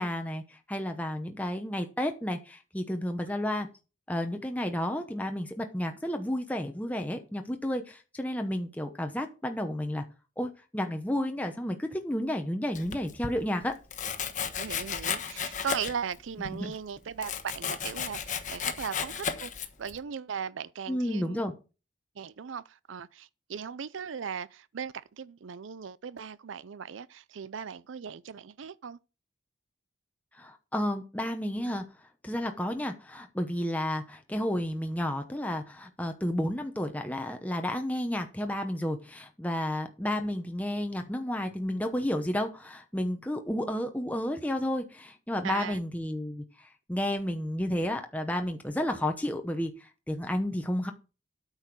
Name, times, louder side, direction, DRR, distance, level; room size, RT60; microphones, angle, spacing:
voice 1, 0.0-3.7 4.1-10.0 10.4-13.8 16.5-16.7 20.9-21.5 30.3-31.8 32.2-50.9, left 1 dB, 10° left, 0.9 m, -31 dB
Domestic sounds home sounds, 12.7-13.4 13.9-16.2 16.5-20.0, left 7 dB, 40° left, 1.2 m, -34 dB
voice 2, 14.6-19.5 19.8-21.5 22.2-29.0 45.4-45.8, right 7 dB, 85° right, 0.5 m, -38 dB
9.0 x 6.4 x 6.1 m
head